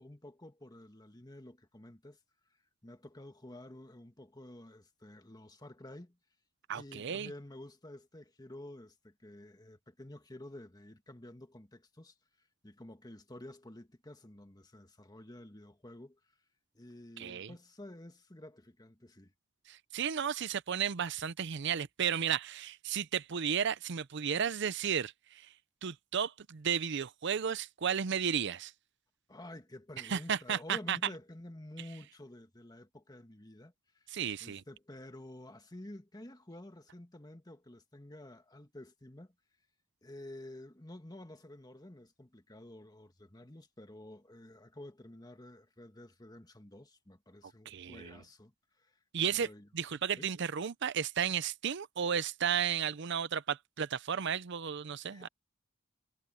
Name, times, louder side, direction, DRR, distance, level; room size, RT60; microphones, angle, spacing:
voice 1, 0.0-2.2 2.8-6.2 6.7-12.1 12.6-16.2 16.7-19.3 29.3-34.0 34.4-39.3 40.0-49.0 49.3-50.3 55.1-55.3, left 1 dB, 20° left, 1.7 m, -50 dB
voice 2, 6.7-7.3 17.2-17.5 19.7-25.5 25.8-28.7 30.1-31.0 34.1-34.6 47.7-48.2 49.1-49.5 49.7-55.3, right 8 dB, 60° right, 0.6 m, -33 dB
head